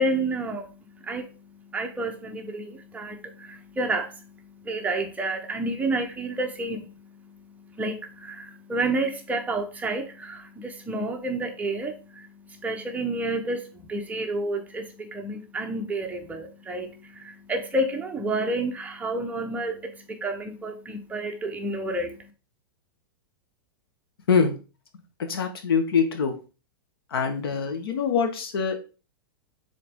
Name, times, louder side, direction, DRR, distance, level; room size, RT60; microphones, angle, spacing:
voice 1, 0.0-22.3, right 2 dB, 10° right, 1.0 m, -30 dB
voice 2, 25.3-26.3 27.1-28.8, left 6 dB, 80° left, 1.6 m, -24 dB
6.5 x 4.0 x 3.7 m
hypercardioid pair, 135°, 12 cm